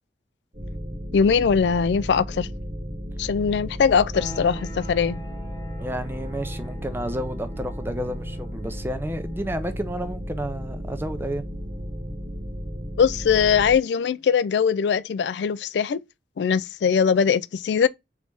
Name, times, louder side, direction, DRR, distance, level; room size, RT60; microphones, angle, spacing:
sound 1, 0.5-13.8, equal, 40° right, 1.3 m, -34 dB
voice 1, 1.1-2.5 3.2-5.2 13.0-16.0 16.4-17.9, left 6 dB, 70° left, 0.3 m, -21 dB
sound 2, 4.1-14.6, left 1 dB, 20° left, 0.8 m, -46 dB
voice 2, 5.8-11.4, equal, 10° right, 0.5 m, -31 dB
3.9 x 3.2 x 3.4 m
head